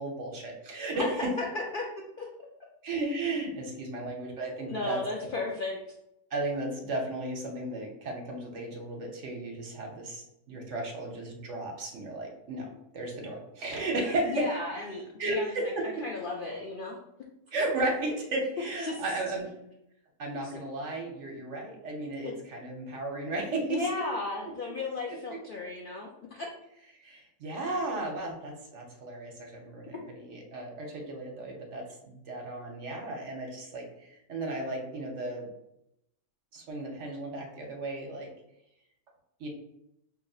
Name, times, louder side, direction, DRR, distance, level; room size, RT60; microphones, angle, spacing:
voice 1, 0.0-1.3 2.8-5.0 6.3-14.5 15.2-16.0 17.5-19.5 20.2-23.9 25.3-25.4 27.0-35.5 36.5-38.3 39.4-39.5, right 2 dB, 60° right, 1 dB, 1.0 m, -34 dB
voice 2, 1.0-1.8 2.2-2.3 3.5-4.0 4.7-5.8 14.3-17.0 18.8-19.0 20.4-20.6 22.2-22.3 23.7-26.5, left 3 dB, 90° left, -1 dB, 0.4 m, -35 dB
5.1 x 2.8 x 2.3 m, 0.82 s
omnidirectional pair, 1.6 m